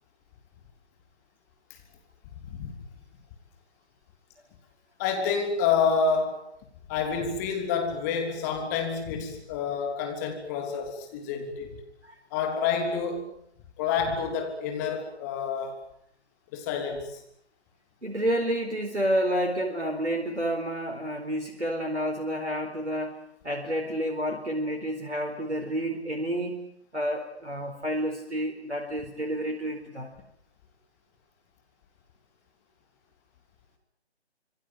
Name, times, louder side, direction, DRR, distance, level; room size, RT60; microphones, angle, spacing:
voice 1, 2.4-2.8 5.0-6.5 6.9-11.8 12.3-13.3 13.8-15.8 16.5-17.2, left 5 dB, 15° left, 4 dB, 3.2 m, -28 dB
voice 2, 18.0-26.7 26.9-30.1, equal, 85° right, 2 dB, 4.5 m, -30 dB
26.5 x 22.5 x 7.7 m, 0.68 s
figure-of-eight pair, 150°, 34 cm